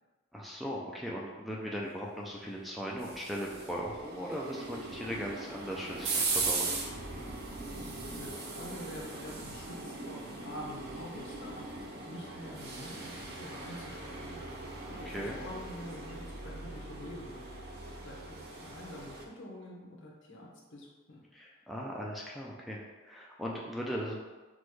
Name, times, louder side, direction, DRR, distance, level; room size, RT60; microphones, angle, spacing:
voice 1, 0.3-6.8 14.9-15.4 21.3-24.2, equal, ahead, -3 dB, 0.3 m, -38 dB
sound 1, 2.6-19.3, right 3 dB, 50° right, 0.6 m, -39 dB
voice 2, 7.7-11.6 12.0-14.4 14.8-17.6 18.0-21.2, left 1 dB, 60° left, -2 dB, 0.9 m, -46 dB
6.1 x 2.2 x 3.1 m, 1.2 s
head